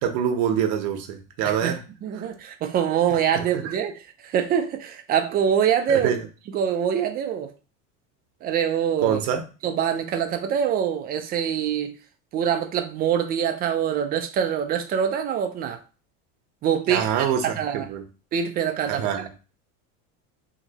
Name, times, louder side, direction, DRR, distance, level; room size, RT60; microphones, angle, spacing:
voice 1, 0.0-1.8 2.2-2.3 3.3-3.7 5.9-6.3 9.0-9.4 16.9-17.5 17.7-18.0 18.9-19.3, right 8 dB, 55° right, 0.8 m, -25 dB
voice 2, 1.4-6.1 6.5-7.5 8.4-9.2 9.6-11.9 12.3-15.8 16.6-17.9 18.3-19.2, right 8 dB, 25° right, 0.4 m, -25 dB
2.9 x 2.9 x 2.8 m
cardioid pair, 145°, 35 cm